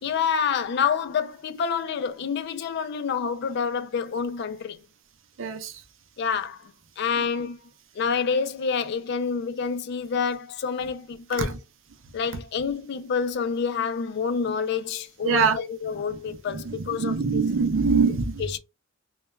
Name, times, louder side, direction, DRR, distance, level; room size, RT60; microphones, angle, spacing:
voice 1, 0.0-4.8 6.2-7.6 8.0-11.5 12.1-17.4 18.4-18.6, left 6 dB, 55° left, 0.3 m, -28 dB
voice 2, 5.4-5.7 7.2-7.3 15.2-15.6 16.5-18.4, right 5 dB, 70° right, 0.5 m, -23 dB
2.2 x 2.2 x 3.0 m
head